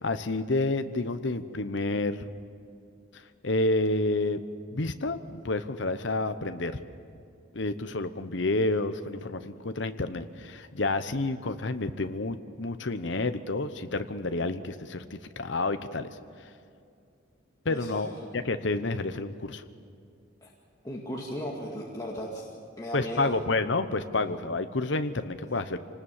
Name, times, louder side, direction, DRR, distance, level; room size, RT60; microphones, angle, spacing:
voice 1, 0.0-2.3 3.1-4.4 4.7-6.8 7.5-16.1 17.6-19.6 22.9-25.8, left 2 dB, 65° left, 9 dB, 0.9 m, -29 dB
voice 2, 17.6-18.1 20.4-20.5 20.8-22.4 22.8-23.4 24.1-24.2, equal, 20° left, -4 dB, 2.1 m, -36 dB
26.5 x 19.5 x 7.3 m, 2.4 s
head